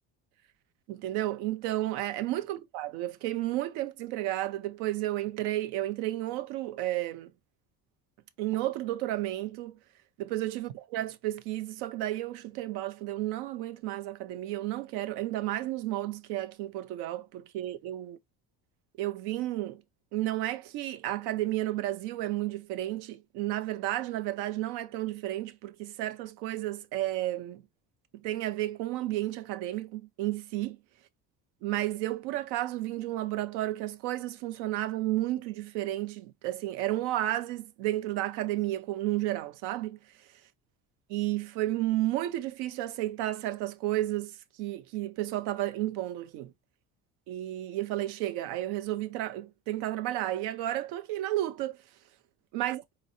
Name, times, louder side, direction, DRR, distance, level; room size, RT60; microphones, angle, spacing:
voice 1, 0.9-7.3 8.4-9.8 10.2-18.2 19.0-19.8 20.1-27.6 28.1-30.8 31.6-40.0 41.1-46.5 47.3-51.8 52.5-52.8, right 15 dB, 85° right, 0.6 m, -32 dB
4.1 x 3.0 x 2.6 m
cardioid pair, 105°, 38 cm